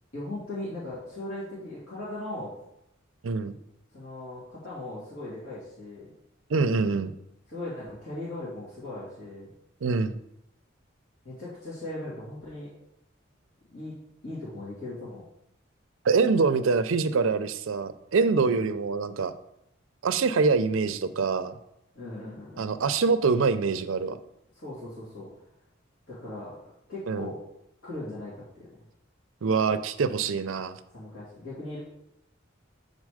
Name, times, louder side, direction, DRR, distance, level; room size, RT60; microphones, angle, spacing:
voice 1, 0.1-2.5 3.9-6.1 7.5-9.5 11.2-12.7 13.7-14.0 14.2-15.2 18.4-18.7 21.9-22.7 24.5-25.3 26.1-27.4 27.8-28.7 30.9-31.8, left 1 dB, 80° left, -10 dB, 2.4 m, -38 dB
voice 2, 3.2-3.6 6.5-7.1 9.8-10.2 16.0-19.3 20.0-21.6 22.6-24.2 27.1-27.3 29.4-30.8, right 4 dB, 75° right, 12 dB, 0.5 m, -25 dB
7.3 x 4.0 x 4.9 m, 0.82 s
head